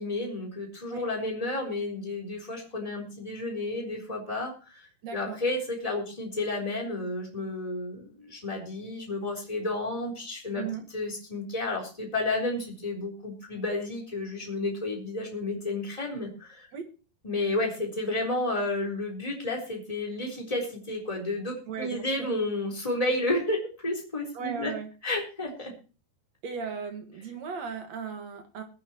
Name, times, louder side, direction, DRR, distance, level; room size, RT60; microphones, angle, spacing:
voice 1, 0.0-10.7 10.9-16.7 17.2-23.6 23.8-24.7 25.0-25.7, left 2 dB, 10° left, -1 dB, 3.4 m, -31 dB
voice 2, 5.0-5.4 10.5-10.8 16.7-16.9 21.7-22.3 24.3-24.9 26.4-28.6, right 6 dB, 55° right, 5 dB, 2.3 m, -36 dB
21.5 x 10.0 x 3.0 m, 0.34 s
omnidirectional pair, 4.7 m